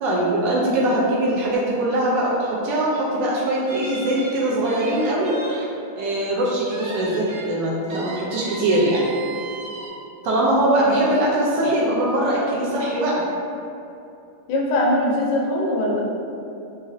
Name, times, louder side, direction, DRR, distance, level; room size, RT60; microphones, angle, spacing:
voice 1, 0.0-5.4 6.0-9.1 10.2-13.3, right 1 dB, 75° right, -5 dB, 1.1 m, -21 dB
sound 1, 3.7-5.6 6.0-6.1 6.7-7.5 7.9-9.9, right 2 dB, 90° right, 1.6 m, -37 dB
voice 2, 14.5-16.0, left 1 dB, 70° left, -2 dB, 1.1 m, -21 dB
3.9 x 2.6 x 2.6 m, 2.7 s
omnidirectional pair, 2.4 m